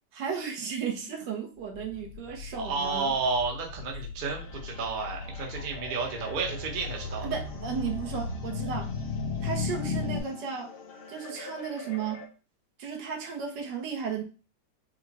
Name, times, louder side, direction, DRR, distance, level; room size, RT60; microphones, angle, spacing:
voice 1, 0.1-3.1 7.2-8.9 9.4-10.7 11.1-12.2 12.8-14.2, right 6 dB, 70° right, 2 dB, 1.4 m, -34 dB
sound 1, 1.7-10.2, left 4 dB, 70° left, 1.1 m, -36 dB
voice 2, 2.6-7.3, right 4 dB, 40° right, 0 dB, 0.7 m, -31 dB
sound 2, 4.3-12.3, left 2 dB, 90° left, 0.5 m, -46 dB
5.0 x 2.1 x 4.0 m, 0.35 s
omnidirectional pair, 2.0 m